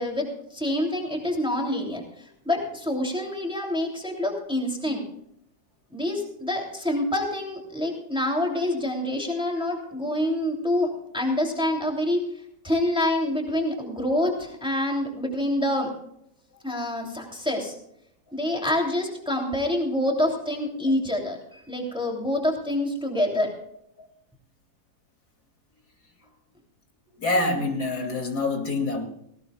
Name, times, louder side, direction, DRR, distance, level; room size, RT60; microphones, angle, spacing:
voice 1, 0.0-5.0 5.9-12.2 12.6-15.9 16.6-17.7 18.3-23.5, left 1 dB, 5° right, 0 dB, 2.9 m, -26 dB
voice 2, 27.1-29.0, left 2 dB, 65° left, 2 dB, 3.2 m, -26 dB
18.5 x 18.0 x 2.3 m, 0.75 s
omnidirectional pair, 1.8 m